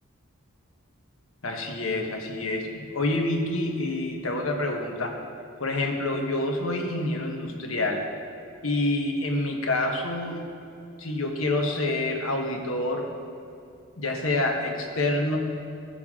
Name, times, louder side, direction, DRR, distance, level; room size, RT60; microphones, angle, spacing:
voice 1, 1.4-5.2 5.6-8.0 8.6-10.4 11.0-13.1 14.0-15.4, left 2 dB, 80° left, 2 dB, 1.3 m, -27 dB
15.5 x 6.9 x 3.7 m, 2.5 s
head